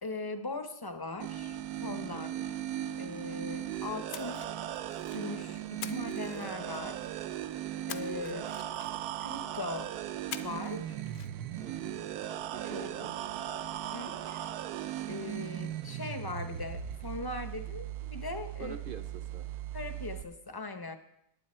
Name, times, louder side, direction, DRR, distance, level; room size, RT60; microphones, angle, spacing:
voice 1, 0.0-2.3 3.0-4.5 5.1-7.0 7.9-8.4 9.2-9.9 10.4-11.0 12.6-13.1 13.9-14.4 15.1-18.8 19.7-21.0, left 3 dB, 30° left, 8 dB, 0.4 m, -40 dB
sound 1, 1.2-20.2, right 11 dB, 80° right, 1.1 m, -38 dB
voice 2, 2.1-2.5 5.4-5.6 11.6-12.0 12.5-13.2 18.6-19.5, right 6 dB, 55° right, 10 dB, 0.6 m, -46 dB
Splash splatter, 4.1-5.3 5.8-7.0 7.9-9.2 10.3-10.8 11.1-11.3, left 8 dB, 60° left, 0.7 m, -44 dB
18.5 x 8.0 x 4.3 m, 0.78 s
omnidirectional pair, 1.6 m